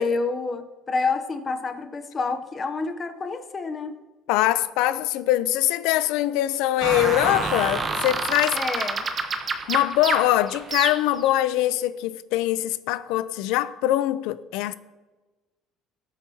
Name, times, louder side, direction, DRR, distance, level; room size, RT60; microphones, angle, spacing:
voice 1, 0.0-4.0 8.5-9.1, left 4 dB, 20° left, 0.7 m, -28 dB
voice 2, 4.3-8.9 9.7-14.7, left 14 dB, 75° left, 0.5 m, -23 dB
sound 1, 6.8-11.3, right 4 dB, 25° right, 0.9 m, -28 dB
20.0 x 8.4 x 2.8 m
cardioid pair, 175°, 0 cm